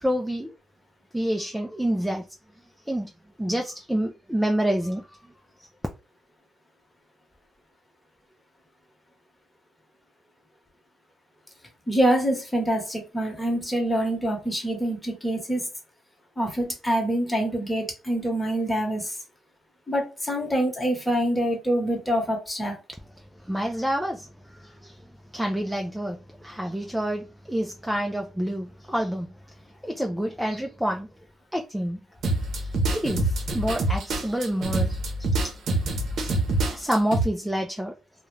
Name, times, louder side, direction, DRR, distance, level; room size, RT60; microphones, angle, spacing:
voice 1, 0.0-0.5 1.1-2.3 2.9-3.1 3.4-5.1 5.6-5.7 23.4-25.0 25.3-29.3 29.8-31.1 31.5-32.0 32.6-35.5 36.6-37.9, equal, 5° right, 0.3 m, -28 dB
voice 2, 11.9-15.7 16.4-19.2 19.9-22.8, right 1 dB, 15° left, 1.0 m, -25 dB
sound 1, 32.2-37.2, right 2 dB, 65° right, 0.7 m, -26 dB
2.3 x 2.1 x 3.1 m
cardioid pair, 90°, 0 cm